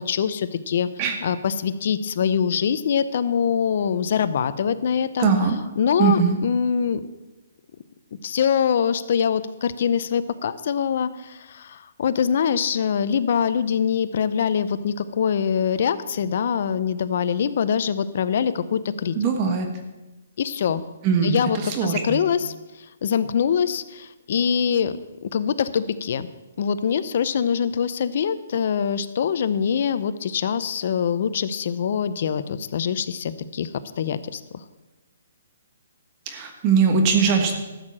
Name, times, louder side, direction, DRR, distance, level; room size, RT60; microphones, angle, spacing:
voice 1, 0.0-0.9 1.2-5.3 5.8-7.0 8.2-19.2 20.4-20.8 21.2-22.5 23.0-24.9 25.2-26.3 26.6-33.7 34.0-34.4, left 7 dB, 55° left, 12 dB, 0.7 m, -24 dB
voice 2, 5.2-5.5 6.0-6.4 19.1-19.7 21.0-22.2 36.3-37.5, right 6 dB, 30° right, 5 dB, 1.3 m, -21 dB
13.0 x 6.6 x 7.4 m, 1.1 s
hypercardioid pair, 160°, 0 cm